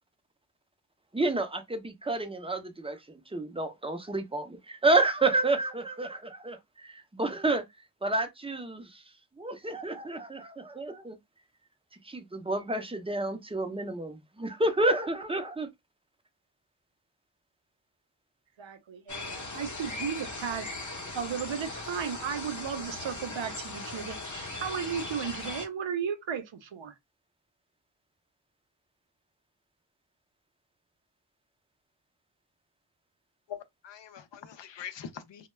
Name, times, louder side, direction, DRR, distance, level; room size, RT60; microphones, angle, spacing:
voice 1, 1.1-7.6 8.0-9.0 9.4-11.2 12.0-15.7, right 2 dB, 15° right, 0.5 m, -30 dB
voice 2, 18.6-20.7 21.1-26.9, right 7 dB, 80° right, 0.6 m, -35 dB
sound 1, 19.1-25.7, left 2 dB, 40° left, 0.8 m, -39 dB
voice 3, 33.5-35.5, left 8 dB, 70° left, 0.5 m, -43 dB
2.2 x 2.1 x 3.1 m
wide cardioid pair, 70°, 45 cm